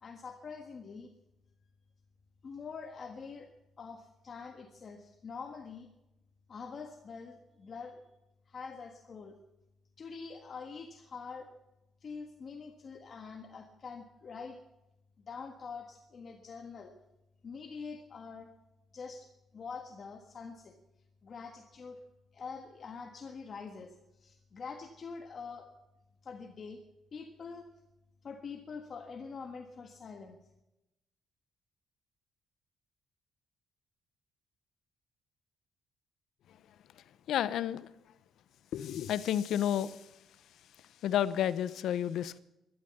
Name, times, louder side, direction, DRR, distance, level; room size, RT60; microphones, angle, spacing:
voice 1, 0.0-1.1 2.4-3.5 3.8-5.9 6.5-8.0 8.5-9.4 10.0-11.5 12.0-14.6 15.2-16.9 17.4-18.5 18.9-20.8 21.2-22.0 22.3-25.7 26.2-26.8 27.1-27.7 28.2-30.4, left 5 dB, 45° left, 1.5 m, -45 dB
voice 2, 37.3-37.9 38.7-40.0 41.0-42.4, left 10 dB, 75° left, 0.8 m, -31 dB
12.5 x 12.5 x 7.0 m
cardioid pair, 90°, 0 cm